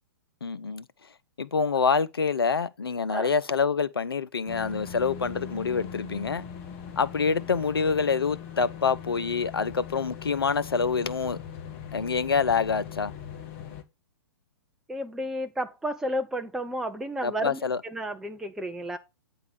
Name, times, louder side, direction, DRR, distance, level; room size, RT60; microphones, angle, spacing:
voice 1, 0.4-0.9 1.4-6.4 7.0-11.4 11.9-13.1 17.2-17.8, left 5 dB, 70° left, 0.6 m, -26 dB
sound 1, 4.5-13.8, left 8 dB, 35° left, 1.2 m, -40 dB
voice 2, 14.9-19.0, equal, 5° right, 0.5 m, -32 dB
9.3 x 3.6 x 5.3 m
figure-of-eight pair, 110°, 13 cm